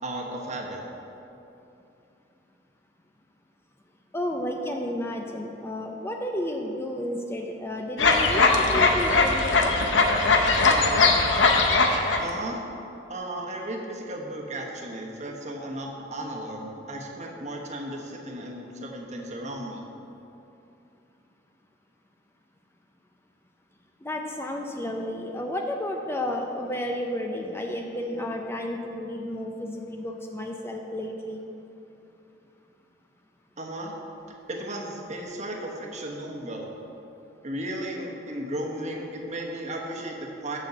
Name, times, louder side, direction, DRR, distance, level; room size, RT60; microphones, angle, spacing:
voice 1, 0.0-0.8 12.2-12.6 13.1-19.8 33.6-33.9 34.5-36.7 37.4-40.6, right 1 dB, 40° right, 0 dB, 1.1 m, -35 dB
voice 2, 4.1-9.8 24.0-31.4, left 1 dB, 15° left, 2 dB, 0.5 m, -32 dB
sound 1, 8.0-12.3, left 3 dB, 85° left, 0.8 m, -20 dB
6.7 x 6.3 x 7.1 m, 2.8 s
head